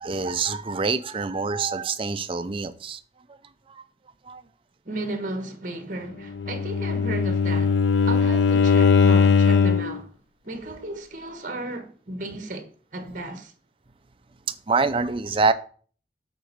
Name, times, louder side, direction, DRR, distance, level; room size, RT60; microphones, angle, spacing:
voice 1, 0.0-3.0 3.7-3.8 4.3-4.4 10.6-10.7 14.5-15.5, right 4 dB, 30° right, 0.5 m, -26 dB
voice 2, 4.8-10.1 10.4-13.5, right 2 dB, 45° right, 1.3 m, -34 dB
Bowed string instrument, 6.3-10.0, left 5 dB, 80° left, 0.5 m, -19 dB
8.1 x 4.4 x 6.5 m
head